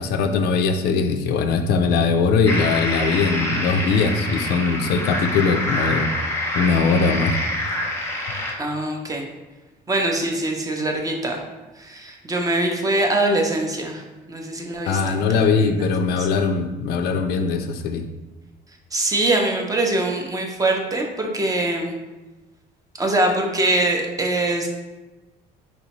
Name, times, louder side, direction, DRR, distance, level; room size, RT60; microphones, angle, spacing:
voice 1, 0.0-6.1 6.5-7.3 14.9-18.0, left 5 dB, 75° left, 6 dB, 0.4 m, -21 dB
sound 1, 2.5-8.5, left 1 dB, 15° left, 0.7 m, -26 dB
voice 2, 8.6-9.2 9.9-11.4 11.8-15.9 16.2-16.3 18.9-22.0 23.0-24.7, right 2 dB, 20° right, 2 dB, 0.6 m, -23 dB
4.2 x 2.7 x 2.9 m, 1.1 s
cardioid pair, 110°, 17 cm